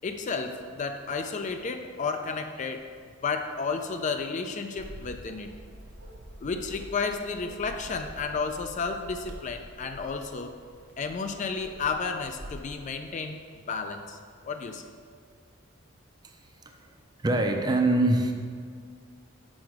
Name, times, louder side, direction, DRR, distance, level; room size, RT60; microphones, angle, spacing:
voice 1, 0.0-2.9 3.2-5.5 6.4-10.6 11.0-13.4 13.7-14.2 14.4-14.8, left 4 dB, 35° left, 6 dB, 0.4 m, -32 dB
Bark, 4.8-12.8, equal, 60° right, 0.9 m, -46 dB
voice 2, 17.2-18.3, right 2 dB, 20° right, 3 dB, 0.5 m, -23 dB
6.2 x 4.8 x 4.7 m, 2.1 s
head